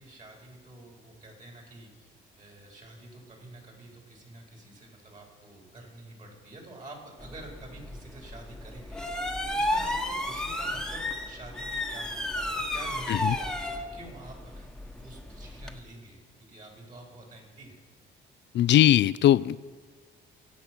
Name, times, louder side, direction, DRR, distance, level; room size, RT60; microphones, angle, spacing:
voice 1, 0.0-1.9 2.4-9.0 9.4-16.2 16.5-17.8, right 2 dB, 40° right, 0 dB, 4.4 m, -48 dB
sound 1, 7.2-15.8, left 1 dB, 5° left, 1.3 m, -33 dB
voice 2, 18.5-19.6, left 12 dB, 65° left, 19 dB, 0.5 m, -20 dB
22.5 x 8.5 x 6.1 m, 1.5 s
cardioid pair, 90°, 20 cm